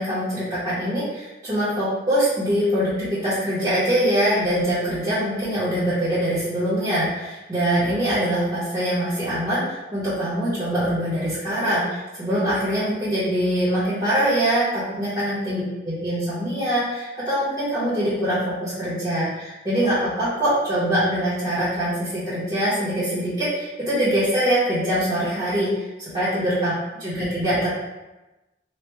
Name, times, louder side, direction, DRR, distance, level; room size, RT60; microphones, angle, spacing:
voice 1, 0.0-26.7 27.0-27.7, equal, 25° right, -13 dB, 1.0 m, -23 dB
3.1 x 2.3 x 3.4 m, 1.1 s
head